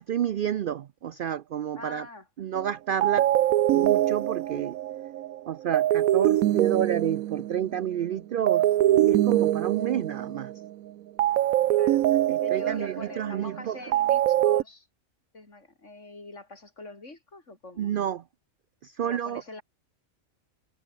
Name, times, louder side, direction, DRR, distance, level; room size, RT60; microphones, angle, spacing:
voice 1, 0.0-2.1 2.4-3.3 3.7-4.8 5.5-10.5 12.3-13.8 17.8-18.2 18.8-19.4, right 10 dB, 70° right, 0.5 m, -30 dB
voice 2, 1.7-2.3 11.7-12.0 12.4-14.9 15.3-17.9 19.0-19.6, left 2 dB, 60° left, 4.6 m, -44 dB
sound 1, 2.6-2.7 3.0-8.0 8.5-10.7 11.2-14.6, right 13 dB, 90° right, 1.1 m, -24 dB
omnidirectional pair, 1.4 m